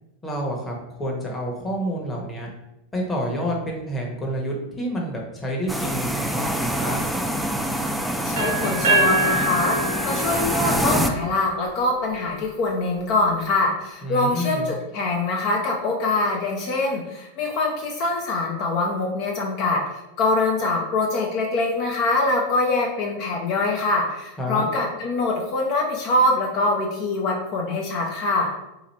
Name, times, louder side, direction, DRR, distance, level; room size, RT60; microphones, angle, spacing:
voice 1, 0.2-2.5 2.9-7.0 14.0-14.7 24.4-24.7, equal, 15° left, -2 dB, 1.0 m, -28 dB
sound 1, 5.7-11.1, right 1 dB, ahead, 0.3 m, -25 dB
voice 2, 8.2-9.8 10.0-28.5, left 2 dB, 50° left, 0 dB, 0.6 m, -24 dB
sound 2, 8.4-12.2, right 2 dB, 75° right, 0.8 m, -25 dB
2.9 x 2.5 x 4.1 m, 0.93 s
hypercardioid pair, 115°, 0 cm